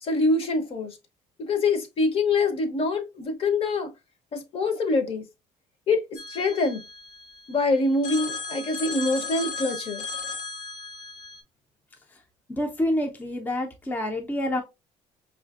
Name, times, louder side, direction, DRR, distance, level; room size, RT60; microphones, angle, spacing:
voice 1, 0.0-1.0 1.4-3.9 4.3-5.2 5.9-6.8 7.5-10.0, left 3 dB, 45° left, 0.7 m, -25 dB
Telephone, 6.2-7.6 8.0-11.4, left 4 dB, 85° left, 1.2 m, -35 dB
voice 2, 12.6-14.6, left 1 dB, 15° left, 0.5 m, -27 dB
4.8 x 2.5 x 2.3 m
cardioid pair, 125°, 14 cm